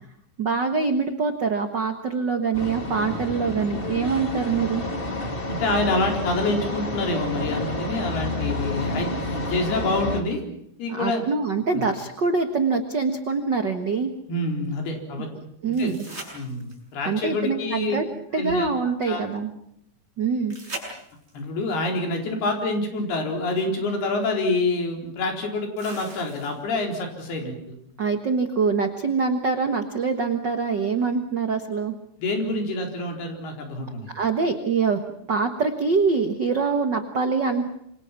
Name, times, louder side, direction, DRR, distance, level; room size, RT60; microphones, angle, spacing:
voice 1, 0.4-4.8 10.9-14.1 15.6-16.1 17.1-18.0 18.3-19.5 20.2-20.6 28.0-31.9 34.1-35.0 35.3-37.7, right 4 dB, 75° right, 6 dB, 1.0 m, -24 dB
sound 1, 2.5-10.2, left 2 dB, 20° left, 1.6 m, -29 dB
voice 2, 5.5-10.4 10.8-11.2 11.7-11.8 14.3-15.3 15.8-15.9 16.3-18.0 18.3-18.7 19.1-19.2 21.3-27.8 32.2-34.1, left 2 dB, 85° left, 2 dB, 6.1 m, -27 dB
sound 2, 15.7-17.0 20.5-21.5 23.4-23.5 25.8-26.8 29.7-29.8, right 2 dB, 15° right, 7.4 m, -40 dB
27.5 x 25.5 x 5.9 m, 0.74 s
omnidirectional pair, 4.4 m